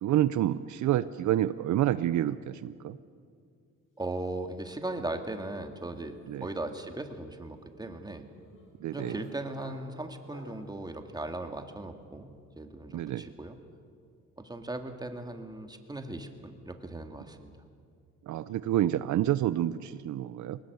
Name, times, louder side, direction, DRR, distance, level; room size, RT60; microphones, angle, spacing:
voice 1, 0.0-3.0 6.3-6.5 8.8-9.2 12.9-13.3 18.3-20.6, right 12 dB, 70° right, 15 dB, 0.7 m, -28 dB
sound 1, 3.9-4.2 4.5-10.7, left 2 dB, 45° left, 7.7 m, -54 dB
voice 2, 4.0-8.3 8.9-13.6 14.4-17.6, right 2 dB, 15° right, 6 dB, 2.1 m, -38 dB
21.5 x 19.0 x 8.0 m, 2.2 s
cardioid pair, 90°, 30 cm